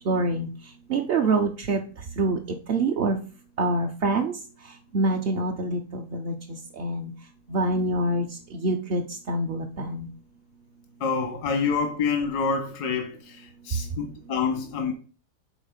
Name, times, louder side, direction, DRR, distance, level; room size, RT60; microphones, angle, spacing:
voice 1, 0.1-0.5 0.9-1.8 2.2-2.4 2.7-3.2 3.6-4.3 4.9-6.3 6.8-7.1 7.5-8.3 8.5-9.0 9.3-10.1, right 2 dB, 55° right, 0.7 m, -25 dB
voice 2, 11.0-14.9, left 5 dB, 90° left, 1.7 m, -27 dB
6.3 x 4.0 x 5.1 m
omnidirectional pair, 1.7 m